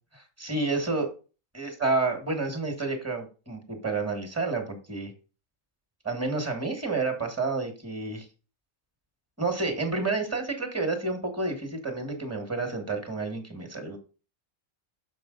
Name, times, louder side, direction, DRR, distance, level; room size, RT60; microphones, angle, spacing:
voice 1, 0.1-1.1 1.5-5.1 6.0-8.2 9.4-14.0, right 3 dB, 10° right, 5 dB, 1.8 m, -30 dB
7.0 x 5.5 x 4.0 m, 0.33 s
omnidirectional pair, 1.5 m